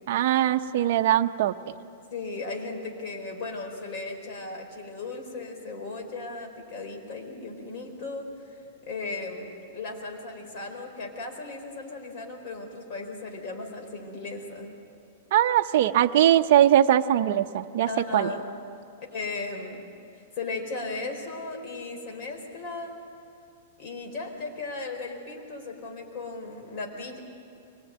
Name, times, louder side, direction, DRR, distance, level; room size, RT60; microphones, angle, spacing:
voice 1, 0.1-1.5 15.3-18.3, right 11 dB, 50° right, 5 dB, 0.7 m, -21 dB
voice 2, 2.1-8.6 8.9-14.7 17.9-18.5 19.1-19.8 20.3-23.0 23.8-27.2, left 3 dB, 40° left, 2 dB, 4.3 m, -36 dB
24.0 x 20.0 x 9.1 m, 2.5 s
supercardioid pair, 160°, 0 cm